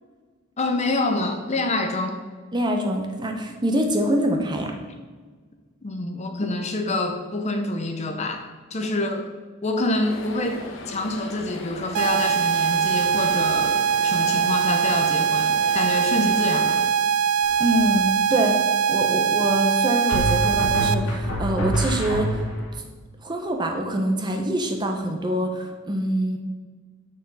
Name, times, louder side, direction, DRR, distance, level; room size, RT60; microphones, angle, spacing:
voice 1, 0.6-2.2 5.8-8.4 8.7-9.3 9.6-16.8, left 2 dB, 35° left, 5 dB, 0.7 m, -26 dB
voice 2, 2.5-4.7 17.6-18.6 18.9-22.4 23.2-26.4, right 1 dB, 20° right, 3 dB, 0.9 m, -25 dB
sound 1, 10.0-16.9, left 2 dB, 65° left, 1.1 m, -38 dB
sound 2, 11.9-20.9, right 7 dB, 80° right, 0.3 m, -22 dB
sound 3, 17.4-17.9 20.1-22.8, equal, 85° left, 2.6 m, -26 dB
6.6 x 6.4 x 5.5 m, 1.4 s
head